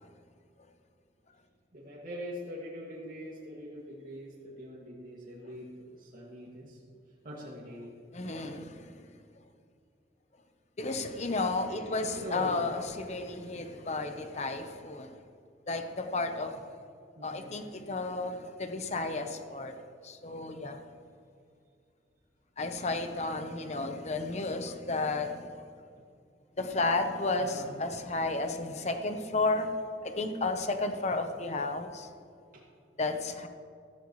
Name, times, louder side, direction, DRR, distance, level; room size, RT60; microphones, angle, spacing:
voice 1, 1.7-6.8 7.2-7.9 12.0-12.8 13.5-13.7 17.1-17.5 23.5-23.9 27.4-27.7 32.5-32.6, equal, 45° right, 2.3 m, -43 dB
voice 2, 8.1-9.1 10.8-15.2 15.7-16.6 17.2-19.7 20.0-20.8 22.6-25.6 26.6-32.1 33.0-33.5, left 3 dB, 35° left, 1.0 m, -33 dB
16.0 x 14.5 x 3.2 m
head